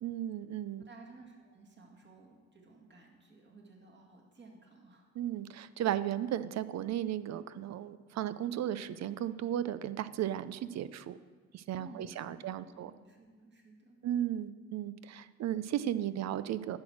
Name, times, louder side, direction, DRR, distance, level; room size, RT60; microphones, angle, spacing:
voice 1, 0.0-0.9 5.2-11.2 11.5-12.9 14.0-16.8, right 11 dB, 60° right, 15 dB, 0.5 m, -35 dB
voice 2, 0.8-5.1 11.8-14.0, right 2 dB, 35° right, 0 dB, 2.0 m, -55 dB
10.5 x 6.1 x 6.1 m, 1.5 s
cardioid pair, 90°, 30 cm